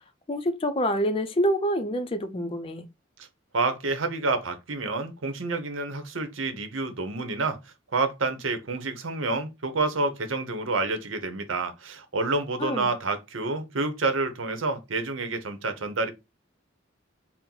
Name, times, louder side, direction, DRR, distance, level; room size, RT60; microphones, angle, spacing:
voice 1, 0.3-2.8 12.6-12.9, equal, 30° left, 0.5 m, -26 dB
voice 2, 3.5-7.6 7.9-16.1, right 3 dB, 85° right, 0.8 m, -28 dB
4.3 x 2.1 x 3.8 m
head